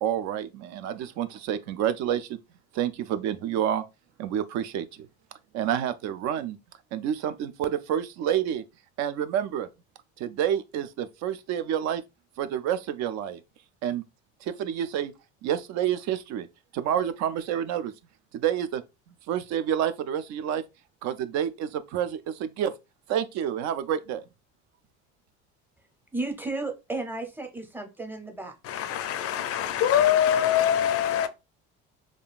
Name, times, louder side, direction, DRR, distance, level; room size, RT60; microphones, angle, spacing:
voice 1, 0.0-2.4 2.7-3.8 4.2-4.9 5.5-6.6 6.9-8.6 9.0-9.7 10.2-12.0 12.4-13.4 13.8-14.0 14.4-15.1 15.4-16.5 16.7-17.9 18.3-18.8 19.3-20.6 21.0-22.7 23.1-24.2, right 10 dB, 60° right, 0.4 m, -28 dB
voice 2, 26.1-28.5, right 2 dB, 5° right, 0.6 m, -33 dB
voice 3, 28.6-31.3, left 10 dB, 45° left, 0.4 m, -23 dB
3.6 x 2.4 x 2.4 m
supercardioid pair, 100°, 32 cm